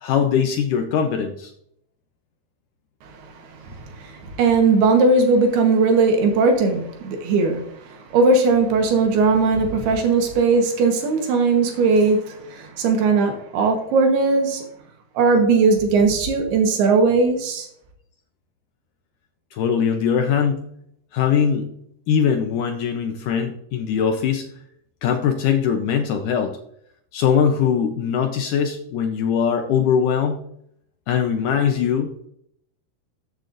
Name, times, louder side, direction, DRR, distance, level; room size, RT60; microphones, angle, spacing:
voice 1, 0.0-1.5 19.5-20.6 21.1-21.7 22.1-24.5 25.0-26.6 27.1-30.4 31.1-32.1, left 7 dB, 85° left, 5 dB, 1.8 m, -21 dB
voice 2, 3.0-14.6 15.2-17.7, right 4 dB, 80° right, 3 dB, 3.2 m, -19 dB
14.0 x 8.0 x 2.6 m, 0.73 s
omnidirectional pair, 4.6 m